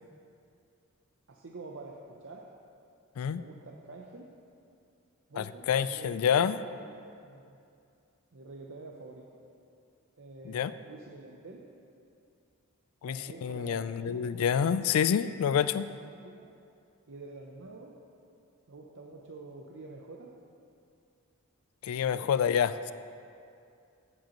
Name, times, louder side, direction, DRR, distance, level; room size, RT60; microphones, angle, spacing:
voice 1, 1.3-2.4 3.4-4.3 5.3-7.6 8.3-9.4 10.2-11.6 13.1-14.3 16.2-16.5 17.1-18.0 18.7-20.3 22.0-22.3, right 3 dB, 55° right, -1 dB, 0.6 m, -47 dB
voice 2, 5.4-6.6 10.4-10.7 13.0-15.9 21.8-22.9, left 8 dB, 75° left, 14 dB, 0.3 m, -28 dB
14.5 x 7.6 x 3.0 m, 2.5 s
head